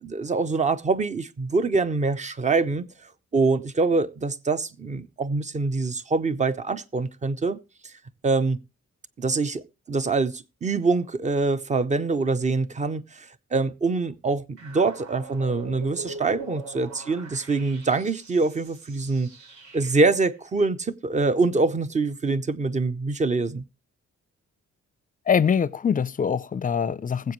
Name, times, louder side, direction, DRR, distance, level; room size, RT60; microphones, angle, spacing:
voice 1, 0.0-2.9 3.3-7.6 8.2-8.6 9.2-9.6 9.9-19.3 19.7-23.6, right 3 dB, 25° right, 0.6 m, -24 dB
sound 1, 14.6-20.3, right 4 dB, 75° right, 4.3 m, -43 dB
voice 2, 25.3-27.3, left 7 dB, 30° left, 0.5 m, -23 dB
20.0 x 8.0 x 3.1 m
wide cardioid pair, 170°, 29 cm